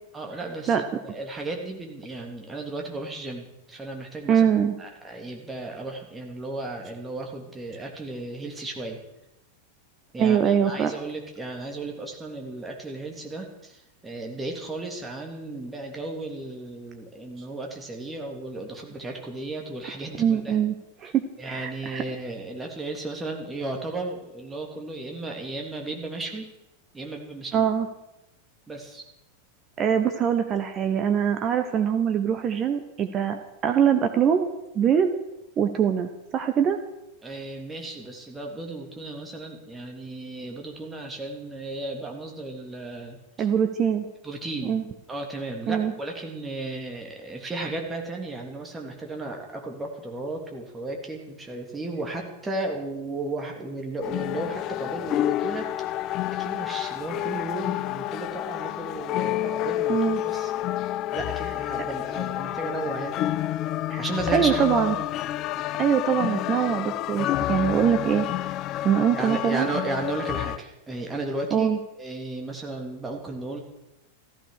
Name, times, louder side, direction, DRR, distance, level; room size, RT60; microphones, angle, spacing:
voice 1, 0.1-4.4 4.8-9.0 10.1-20.6 21.4-26.5 26.9-27.7 28.7-29.0 37.2-43.5 44.2-44.8 45.1-55.7 56.0-60.5 61.1-63.2 64.0-64.7 69.1-71.7 72.0-73.6, right 2 dB, 10° right, 1 dB, 3.2 m, -34 dB
voice 2, 4.3-4.7 10.2-10.9 20.2-20.7 21.0-22.0 27.5-27.9 29.8-34.5 34.7-35.1 35.6-36.8 43.4-44.1 44.6-44.8 45.7-45.9 59.9-60.2 63.9-64.0 64.3-64.9 65.8-68.3 68.8-69.7 71.5-71.8, right 8 dB, 30° right, 8 dB, 1.2 m, -23 dB
sound 1, 54.0-70.6, left 14 dB, 35° left, 0.4 m, -29 dB
15.0 x 14.0 x 6.6 m, 0.90 s
figure-of-eight pair, 90°, 0 cm